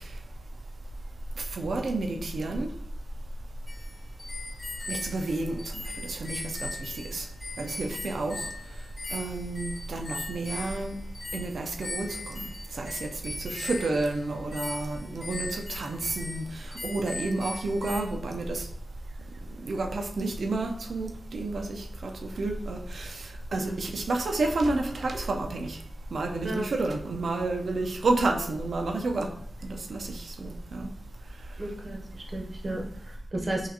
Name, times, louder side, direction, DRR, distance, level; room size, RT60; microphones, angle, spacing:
voice 1, 1.4-2.7 4.9-7.3 7.6-8.5 9.1-11.0 11.3-12.5 12.7-18.7 19.6-25.8 26.1-29.3 29.6-30.9, right 2 dB, 75° right, 4 dB, 0.6 m, -30 dB
sound 1, 3.7-18.0, left 2 dB, 35° left, 0.4 m, -39 dB
voice 2, 31.6-33.7, right 1 dB, 35° right, 1 dB, 0.7 m, -34 dB
5.5 x 2.5 x 2.8 m, 0.62 s
wide cardioid pair, 135°, 0 cm